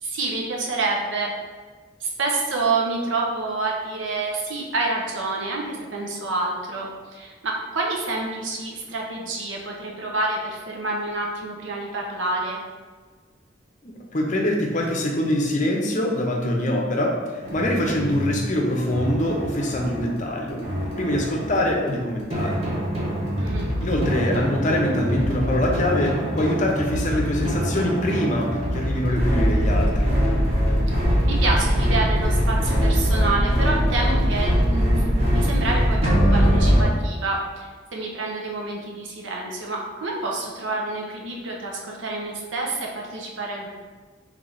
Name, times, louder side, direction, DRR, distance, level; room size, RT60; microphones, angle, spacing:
voice 1, 0.0-1.3 2.0-12.6 23.4-23.7 27.1-27.2 31.2-43.7, right 3 dB, 80° right, -1 dB, 0.7 m, -28 dB
voice 2, 13.8-17.1 17.5-20.6 21.0-22.6 23.8-30.1, left 1 dB, 40° left, 0 dB, 0.6 m, -24 dB
sound 1, 17.4-36.9, equal, 35° right, 1.0 m, -22 dB
3.2 x 3.1 x 3.9 m, 1.4 s
head